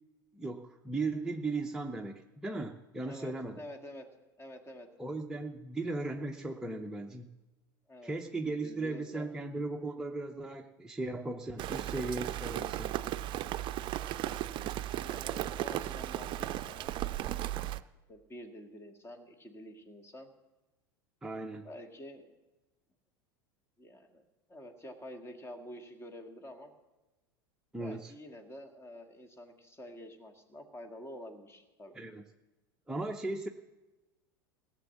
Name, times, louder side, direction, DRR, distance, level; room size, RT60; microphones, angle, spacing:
voice 1, 0.3-3.6 5.0-7.3 8.0-12.9 21.2-21.7 27.7-28.1 31.9-32.2 32.9-33.5, right 2 dB, 5° right, 2 dB, 0.7 m, -37 dB
voice 2, 3.1-4.1 4.4-4.9 7.9-8.1 8.4-9.3 14.9-16.9 17.2-17.7 18.1-20.3 21.6-22.3 23.8-24.2 24.5-26.7 27.8-32.0, left 1 dB, 20° left, 6 dB, 1.8 m, -48 dB
Rain, 11.6-17.8, right 13 dB, 40° right, 0.5 m, -36 dB
16.0 x 7.1 x 7.2 m, 1.1 s
hypercardioid pair, 85°, 12 cm